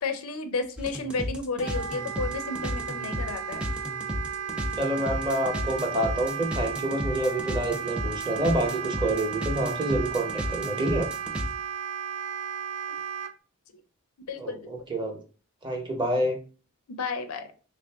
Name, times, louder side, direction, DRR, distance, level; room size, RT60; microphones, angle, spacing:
voice 1, 0.0-3.7 14.3-14.7 16.9-17.5, left 3 dB, 90° left, 8 dB, 0.5 m, -32 dB
sound 1, 0.8-11.5, equal, 5° right, 0.3 m, -33 dB
Wind instrument woodwind instrument, 1.6-13.3, right 7 dB, 85° right, 0.3 m, -34 dB
voice 2, 4.8-11.1 14.4-15.2 15.6-16.4, right 1 dB, 20° right, 2 dB, 0.7 m, -28 dB
3.2 x 2.5 x 3.4 m, 0.38 s
head